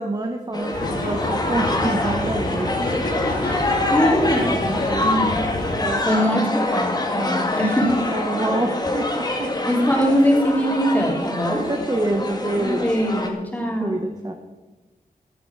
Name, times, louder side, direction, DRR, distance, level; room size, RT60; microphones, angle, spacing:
voice 1, 0.0-2.9 6.3-6.5 8.1-9.7 11.5-12.9 13.8-14.3, right 2 dB, 25° right, 3 dB, 1.1 m, -26 dB
sound 1, 0.5-13.3, left 2 dB, 25° left, 1.8 m, -25 dB
sound 2, 0.7-5.8, left 1 dB, 85° left, 5.8 m, -28 dB
voice 2, 3.4-5.4 5.8-8.0 9.7-11.6 12.5-14.0, equal, 10° left, -1 dB, 3.0 m, -22 dB
15.0 x 12.5 x 4.7 m, 1.1 s
wide cardioid pair, 125°, 16 cm